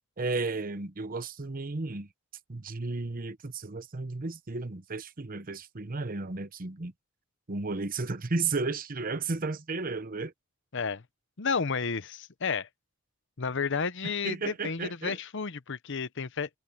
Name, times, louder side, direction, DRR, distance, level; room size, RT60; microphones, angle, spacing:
voice 1, 0.2-2.1 2.5-6.9 7.5-10.3 14.2-15.2, right 3 dB, 45° right, 1.0 m, -33 dB
voice 2, 10.7-11.0 11.4-12.7 13.4-16.5, left 5 dB, 60° left, 0.9 m, -31 dB
head